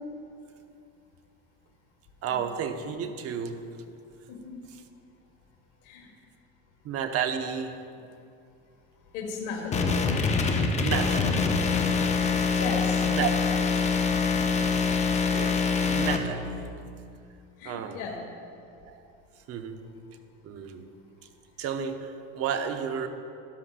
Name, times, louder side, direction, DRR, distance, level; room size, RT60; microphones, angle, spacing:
voice 1, 2.2-3.8 6.8-7.9 10.8-11.7 13.0-14.0 15.3-16.7 17.6-18.0 18.8-19.0 19.5-19.9 20.4-20.9 21.6-23.1, right 7 dB, 45° right, 7 dB, 0.8 m, -32 dB
voice 2, 4.3-4.6 5.8-6.1 9.1-10.0 12.5-13.1 17.6-18.2, left 4 dB, 70° left, -1 dB, 1.8 m, -35 dB
sound 1, 9.7-16.2, left 5 dB, 20° left, 0.6 m, -25 dB
13.0 x 11.5 x 2.5 m, 2.5 s
cardioid pair, 145°, 32 cm